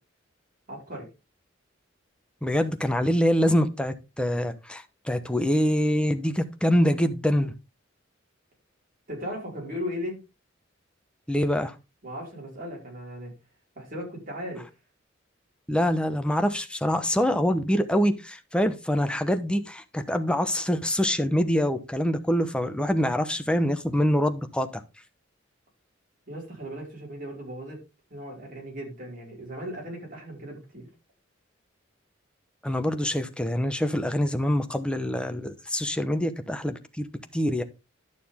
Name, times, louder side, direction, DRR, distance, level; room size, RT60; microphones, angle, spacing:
voice 1, 0.7-1.1 9.1-10.2 12.0-13.3 13.7-14.6 26.3-27.8 28.1-30.9, equal, 45° right, 5.1 m, -37 dB
voice 2, 2.4-7.5 11.3-11.7 15.7-24.8 32.6-37.1 37.3-37.6, equal, 5° left, 0.9 m, -25 dB
11.5 x 6.7 x 3.6 m
head